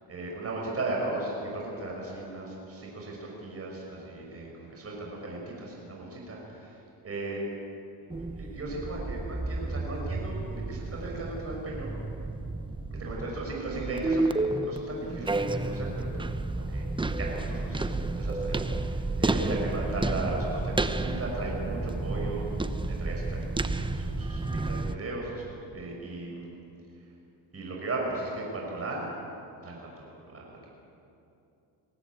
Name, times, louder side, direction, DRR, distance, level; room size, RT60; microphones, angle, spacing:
voice 1, 0.1-7.4 8.0-11.9 13.0-16.2 16.5-16.9 17.2-26.5 27.5-29.1 29.6-30.7, right 2 dB, 35° right, -2 dB, 6.4 m, -36 dB
sound 1, 8.1-25.0, right 2 dB, 10° right, 0.9 m, -31 dB
23.0 x 17.0 x 8.6 m, 2.7 s
cardioid pair, 100°, 42 cm